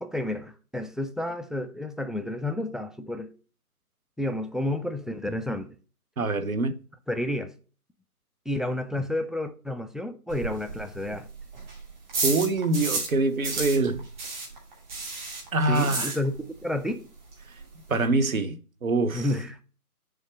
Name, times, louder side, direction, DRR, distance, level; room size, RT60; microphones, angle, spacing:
voice 1, 0.0-3.3 4.2-5.7 7.1-7.5 8.5-11.3 15.7-17.0 19.1-19.6, left 1 dB, ahead, 0.3 m, -30 dB
voice 2, 6.2-6.8 12.2-14.3 15.5-16.2 17.9-19.3, right 3 dB, 65° right, 1.0 m, -25 dB
sound 1, 10.3-13.2 13.4-16.6 16.9-17.0 17.3-17.4 17.6-18.1, right 3 dB, 30° right, 2.4 m, -32 dB
6.4 x 3.6 x 6.2 m
figure-of-eight pair, 160°, 46 cm